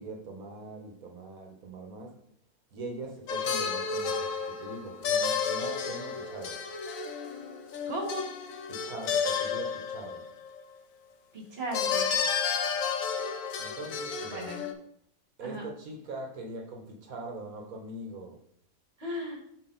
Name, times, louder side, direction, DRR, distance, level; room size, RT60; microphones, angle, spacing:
voice 1, 0.0-2.2 2.7-6.6 8.7-10.2 13.6-14.5 15.4-18.4, right 2 dB, 75° right, 1.6 m, -42 dB
sound 1, 3.3-10.6 11.7-14.7, left 6 dB, 70° left, 1.1 m, -31 dB
voice 2, 7.9-8.3 11.3-12.1 14.3-14.6 15.4-15.7 19.0-19.4, equal, 45° right, 1.9 m, -35 dB
6.1 x 5.1 x 3.9 m
omnidirectional pair, 1.5 m